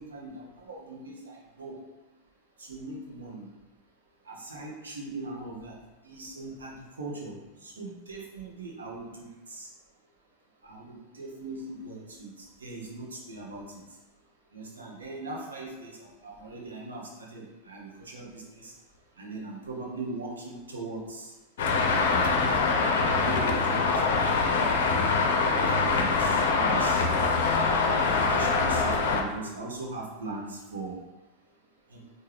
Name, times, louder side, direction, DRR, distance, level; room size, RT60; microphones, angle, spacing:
voice 1, 0.0-1.8 2.6-3.5 4.3-5.8 6.0-7.4 7.6-9.7 10.6-13.8 14.5-18.7 19.2-21.3 21.8-22.1 22.9-24.6 25.5-27.0 27.7-31.0 31.9-32.0, right 2 dB, 70° right, -2 dB, 0.8 m, -40 dB
Traffic noise roadway noise, 21.6-29.2, left 4 dB, 55° left, 0.4 m, -24 dB
4.5 x 2.2 x 3.3 m, 1.1 s
figure-of-eight pair, 90°, 0 cm